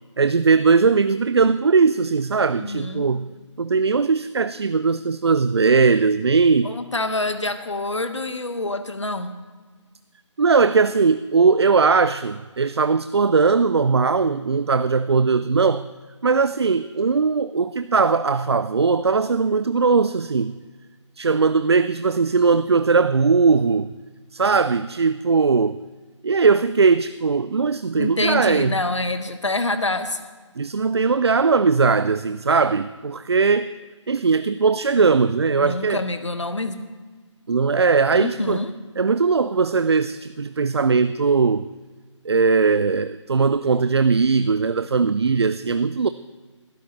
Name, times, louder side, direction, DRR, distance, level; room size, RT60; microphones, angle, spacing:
voice 1, 0.2-3.3 3.6-6.8 10.4-15.9 16.2-20.6 21.2-23.9 24.3-25.8 26.2-28.8 30.6-33.7 34.1-36.0 37.5-38.6 39.0-41.7 42.2-46.1, right 4 dB, 55° right, 14 dB, 0.4 m, -19 dB
voice 2, 2.6-3.0 6.6-9.4 27.9-30.2 35.6-36.9 38.1-38.7, left 2 dB, 70° left, 10 dB, 1.2 m, -26 dB
19.5 x 13.0 x 3.1 m, 1.4 s
figure-of-eight pair, 150°, 16 cm